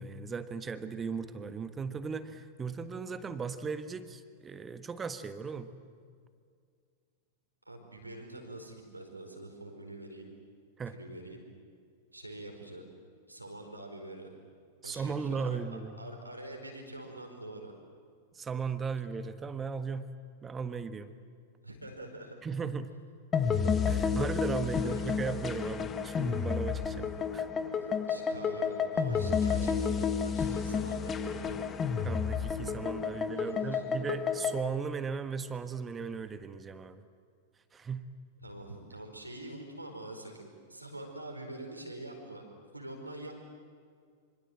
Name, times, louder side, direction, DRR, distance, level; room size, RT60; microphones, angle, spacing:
voice 1, 0.0-5.7 10.8-10.9 14.8-15.9 18.3-20.1 20.4-21.1 22.4-23.0 23.9-27.5 32.0-37.0 37.7-38.1, right 5 dB, 20° right, 11 dB, 1.4 m, -37 dB
voice 2, 7.6-10.3 10.9-11.4 12.1-12.8 13.3-14.3 14.8-15.6 16.0-17.7 21.6-22.4 24.8-25.2 27.8-31.7 33.4-33.8 38.4-42.4 42.7-43.3, right 1 dB, 90° right, 2 dB, 4.9 m, -45 dB
sound 1, 23.3-34.6, left 6 dB, 25° left, 1.4 m, -31 dB
26.0 x 26.0 x 7.7 m, 2.2 s
figure-of-eight pair, 95°, 0 cm